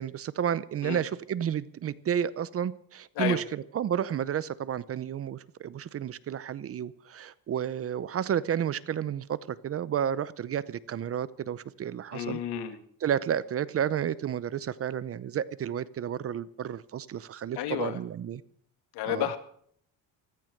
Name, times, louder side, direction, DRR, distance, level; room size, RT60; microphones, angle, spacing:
voice 1, 0.0-12.4 13.0-18.4 19.1-19.3, right 9 dB, 35° right, 0.7 m, -31 dB
voice 2, 12.1-12.8 17.6-18.0 18.9-19.4, left 11 dB, 80° left, 2.0 m, -31 dB
15.0 x 14.0 x 6.5 m
cardioid pair, 120°, 39 cm